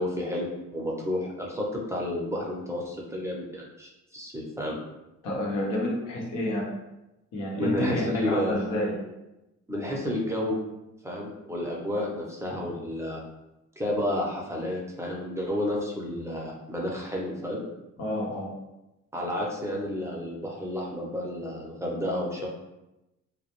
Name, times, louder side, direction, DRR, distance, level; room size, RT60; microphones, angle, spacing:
voice 1, 0.0-4.8 7.5-8.8 9.7-10.6 11.0-13.2 13.8-17.7 19.1-22.5, left 1 dB, 10° right, -3 dB, 0.5 m, -31 dB
voice 2, 5.2-6.6 7.3-8.9 18.0-18.5, left 1 dB, 90° left, -3 dB, 0.8 m, -29 dB
2.2 x 2.0 x 2.9 m, 0.95 s
cardioid pair, 90°, 30 cm